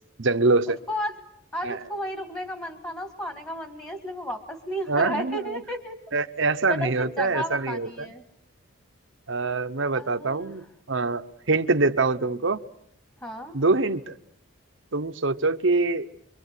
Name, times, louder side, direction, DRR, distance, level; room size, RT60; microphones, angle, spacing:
voice 1, 0.2-0.8 1.6-1.8 4.9-5.6 6.1-8.1 9.3-12.6 13.5-14.1 14.9-16.1, right 3 dB, 65° right, 1.0 m, -24 dB
voice 2, 1.5-6.0 6.7-8.2 9.9-10.6 13.2-13.6, equal, 15° left, 1.9 m, -33 dB
25.0 x 24.5 x 8.3 m
head